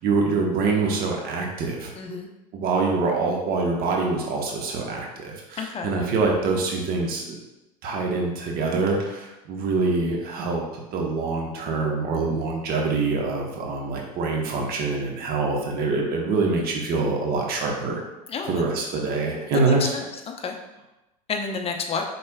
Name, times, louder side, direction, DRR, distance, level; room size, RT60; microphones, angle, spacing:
voice 1, 0.0-2.2 2.5-7.4 7.8-18.0 18.4-20.0, right 3 dB, 50° right, 0 dB, 1.0 m, -25 dB
voice 2, 2.0-2.3 5.6-5.9 18.3-18.7 19.6-20.5 21.3-22.0, left 5 dB, 30° left, 4 dB, 0.7 m, -30 dB
5.3 x 4.2 x 2.3 m, 0.97 s
hypercardioid pair, 85°, 20 cm